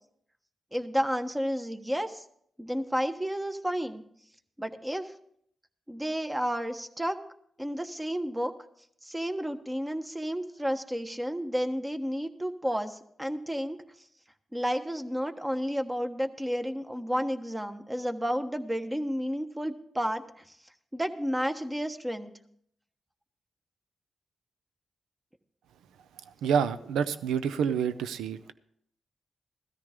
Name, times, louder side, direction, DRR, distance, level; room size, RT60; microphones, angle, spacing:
voice 1, 0.7-2.2 2.6-4.0 4.6-5.1 5.9-7.2 7.6-8.5 9.0-13.8 14.5-20.2 20.9-22.3, equal, 15° right, 7 dB, 1.3 m, -31 dB
voice 2, 26.3-28.5, right 7 dB, 85° right, 13 dB, 0.5 m, -28 dB
15.5 x 13.5 x 3.7 m, 0.67 s
supercardioid pair, 40°, 0 cm